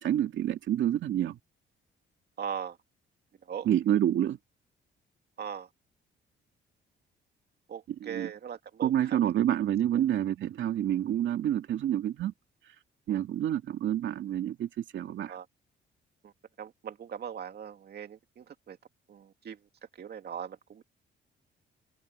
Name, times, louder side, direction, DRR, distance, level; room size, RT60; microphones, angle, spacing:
voice 1, 0.0-1.4 3.7-4.4 8.0-8.3 8.8-12.3 13.1-15.3, right 11 dB, 70° right, 2.3 m, -28 dB
voice 2, 2.4-2.8 3.4-3.7 5.4-5.7 7.7-9.2 9.9-10.0 13.1-13.2 15.2-15.5 16.2-16.3 16.6-18.8 19.1-20.8, right 8 dB, 55° right, 2.6 m, -40 dB
cardioid pair, 90°, 20 cm